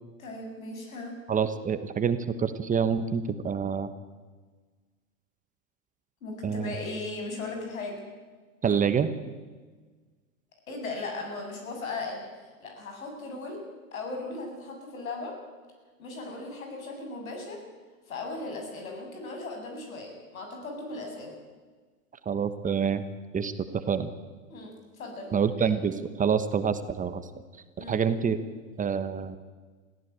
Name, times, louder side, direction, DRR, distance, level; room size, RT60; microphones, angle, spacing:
voice 1, 0.2-1.1 6.2-8.0 10.7-13.6 13.9-15.4 16.0-17.6 18.1-21.4 24.5-25.3 25.6-25.7 27.8-28.0, left 3 dB, 75° left, 3 dB, 7.6 m, -37 dB
voice 2, 1.3-3.9 6.4-6.7 8.6-9.1 22.2-23.0 23.3-24.1 25.3-27.2 27.8-28.4 28.8-29.4, right 7 dB, 20° right, 10 dB, 1.2 m, -27 dB
22.0 x 15.5 x 8.9 m, 1.4 s
hypercardioid pair, 100°, 41 cm